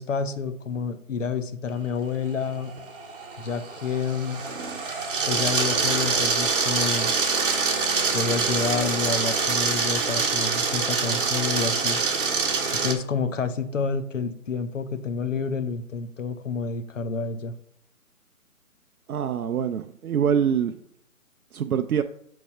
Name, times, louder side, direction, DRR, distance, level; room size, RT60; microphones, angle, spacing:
voice 1, 0.0-2.7 3.4-4.4 5.3-7.1 8.1-12.0 12.7-17.5, left 5 dB, 60° left, 11 dB, 0.8 m, -29 dB
sound 1, 2.4-12.9, right 4 dB, 40° right, 1.0 m, -25 dB
voice 2, 19.1-20.8 21.5-22.0, right 8 dB, 85° right, 7 dB, 0.5 m, -24 dB
6.5 x 3.4 x 5.4 m, 0.71 s
figure-of-eight pair, 155°, 43 cm